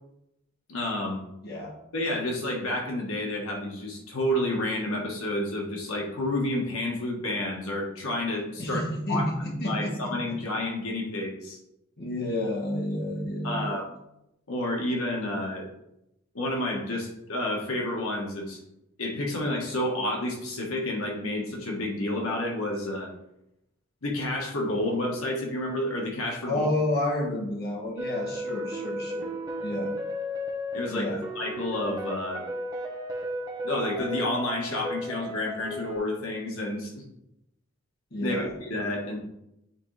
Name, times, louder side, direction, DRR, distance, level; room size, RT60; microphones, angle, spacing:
voice 1, 0.7-1.2 1.9-9.3 9.6-11.6 13.4-13.9 14.5-15.7 16.3-18.6 19.0-23.1 24.0-26.7 30.7-31.1 31.3-32.5 33.6-37.0 38.1-39.2, left 1 dB, 85° left, 0 dB, 1.4 m, -30 dB
voice 2, 1.4-1.7 8.6-10.2 12.0-13.8 26.5-29.3 29.6-30.0 30.9-31.2 38.1-38.5, left 1 dB, 45° left, -2 dB, 1.3 m, -30 dB
sound 1, 28.0-36.0, equal, 20° right, 1.0 m, -34 dB
9.6 x 3.7 x 3.3 m, 0.84 s
head